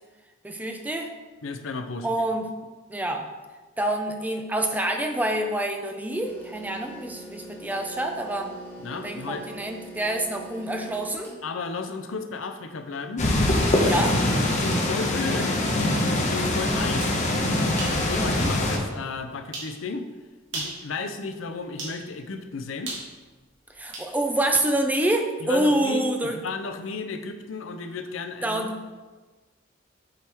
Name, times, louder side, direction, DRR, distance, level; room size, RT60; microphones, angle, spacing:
voice 1, 0.4-1.1 2.0-2.5 2.9-3.3 3.8-8.6 9.0-11.4 13.8-14.5 18.2-18.5 23.7-26.4 28.4-28.8, right 1 dB, 10° right, 4 dB, 0.5 m, -27 dB
voice 2, 1.4-2.1 8.8-9.4 11.4-13.3 13.8-14.1 14.4-15.6 16.0-17.2 17.9-20.1 20.5-22.9 25.4-28.7, left 4 dB, 75° left, 8 dB, 0.6 m, -34 dB
sound 1, 6.2-11.4, right 1 dB, 10° left, 1.3 m, -43 dB
sound 2, 13.2-18.8, left 1 dB, 40° left, 1.0 m, -23 dB
sound 3, 17.0-17.2 17.8-18.0 18.5-18.6 19.5-19.7 20.4-20.8 21.8-22.0 22.9-24.1, right 2 dB, 65° right, 2.0 m, -35 dB
7.5 x 4.5 x 3.5 m, 1.3 s
head